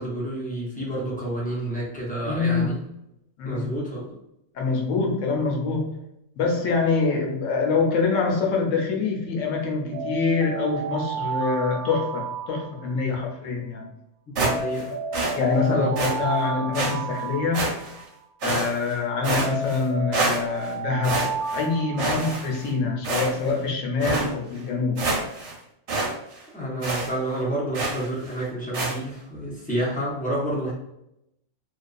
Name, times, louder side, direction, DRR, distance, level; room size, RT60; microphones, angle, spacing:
voice 1, 0.0-2.8 3.4-4.1 12.9-13.2 13.8-13.9 14.3-14.9 15.7-16.0 26.5-30.7, right 1 dB, 15° left, -6 dB, 0.3 m, -29 dB
voice 2, 2.2-2.7 3.4-3.7 4.5-6.0 6.4-13.8 15.3-17.7 18.4-25.1, left 4 dB, 70° left, 1 dB, 1.0 m, -25 dB
Alarm, 9.9-13.2 14.4-18.2 19.4-22.7, right 4 dB, 85° right, 1.0 m, -32 dB
sound 1, 14.4-14.9 15.1-15.4 16.0-16.1 16.7-16.9 17.5-18.0 18.4-18.9 19.2-19.8 20.1-20.7 21.0-21.6 22.0-22.7 23.0-23.6 24.0-24.3 24.7-24.8 25.0-25.5 25.9-26.1 26.4-26.5 26.8-27.1 27.7-28.1 28.7-29.0, right 3 dB, 65° right, 0.8 m, -26 dB
2.5 x 2.3 x 2.4 m, 0.81 s
omnidirectional pair, 1.4 m